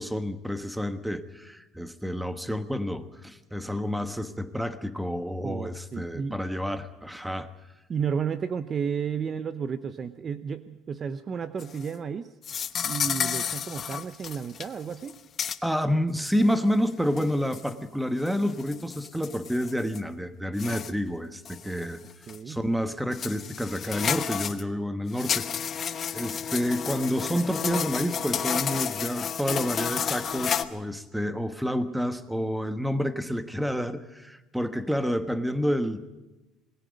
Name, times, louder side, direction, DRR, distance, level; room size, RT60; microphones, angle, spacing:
voice 1, 0.0-7.5 15.6-22.0 22.5-25.5 26.1-36.1, equal, ahead, 11 dB, 1.2 m, -29 dB
voice 2, 5.4-6.4 7.9-12.3 12.8-15.2 22.3-22.6, right 6 dB, 25° right, 12 dB, 0.7 m, -32 dB
sound 1, 11.6-11.9 12.4-14.7 14.9-15.1 15.4-15.6 16.3-16.4 17.2-17.7 18.3-20.0 20.6-20.9 21.5-21.8 22.3-22.4 23.1-24.6 25.1-30.6, left 8 dB, 30° left, 1.0 m, -31 dB
27.0 x 21.0 x 5.2 m, 1.1 s
cardioid pair, 160°, 0 cm